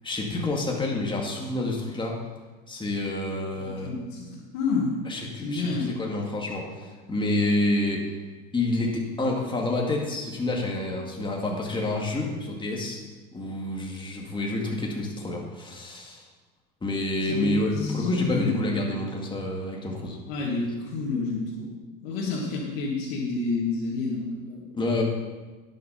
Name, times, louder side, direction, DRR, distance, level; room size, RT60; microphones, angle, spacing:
voice 1, 0.0-2.2 2.7-3.9 5.1-8.0 8.5-13.0 13.3-16.2 16.8-20.2 24.7-25.0, left 2 dB, 15° left, -1 dB, 2.1 m, -28 dB
voice 2, 3.6-4.9 5.4-5.9 17.3-18.8 20.3-21.7 22.0-24.6, left 3 dB, 85° left, -5 dB, 2.0 m, -29 dB
11.0 x 6.5 x 5.7 m, 1.3 s
supercardioid pair, 95°, 30 cm